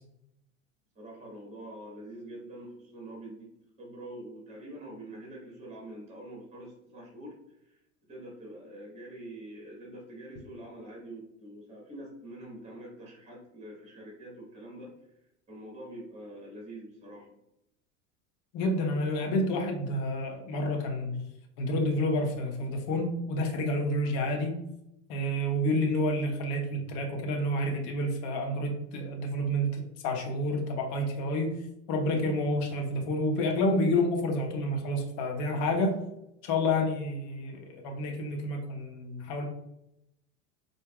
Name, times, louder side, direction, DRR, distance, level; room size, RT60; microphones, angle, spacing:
voice 1, 0.9-3.5 3.8-7.8 8.1-14.9 15.5-17.4, right 1 dB, 15° right, -2 dB, 1.4 m, -45 dB
voice 2, 18.5-21.3 21.6-24.6 25.1-31.6 31.9-36.0 36.4-39.5, left 1 dB, 50° left, 2 dB, 0.8 m, -29 dB
4.4 x 2.7 x 2.3 m, 0.82 s
hypercardioid pair, 100°, 38 cm